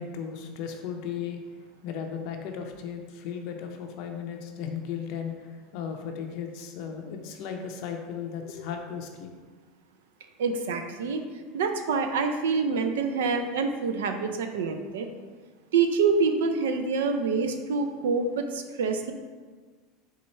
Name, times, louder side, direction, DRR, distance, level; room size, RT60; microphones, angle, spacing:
voice 1, 0.0-9.3, left 7 dB, 60° left, 4 dB, 0.5 m, -36 dB
voice 2, 10.4-11.2 11.5-15.1 15.7-19.1, right 4 dB, 85° right, 6 dB, 0.4 m, -26 dB
4.4 x 2.3 x 4.1 m, 1.4 s
supercardioid pair, 105°, 0 cm